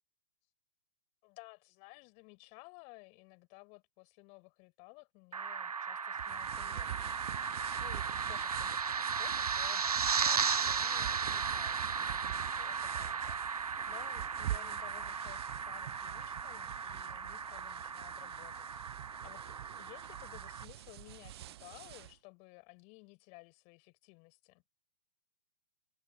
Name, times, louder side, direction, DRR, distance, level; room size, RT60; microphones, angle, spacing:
voice 1, 1.2-18.8 19.2-24.6, left 32 dB, 35° left, 7.9 m, -56 dB
sound 1, 5.3-20.6, right 6 dB, 80° right, 0.7 m, -36 dB
sound 2, 6.2-22.1, right 14 dB, 45° right, 0.4 m, -46 dB
figure-of-eight pair, 115°, 19 cm